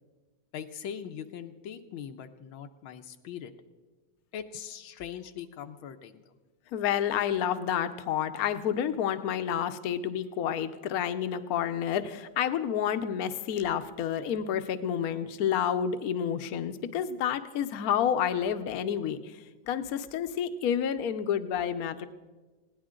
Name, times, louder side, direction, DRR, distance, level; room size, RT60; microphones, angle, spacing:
voice 1, 0.5-3.5 4.3-6.2, left 8 dB, 85° left, 6 dB, 1.6 m, -41 dB
voice 2, 6.7-22.1, left 9 dB, 60° left, 10 dB, 1.0 m, -29 dB
20.0 x 17.0 x 3.8 m, 1.2 s
omnidirectional pair, 2.2 m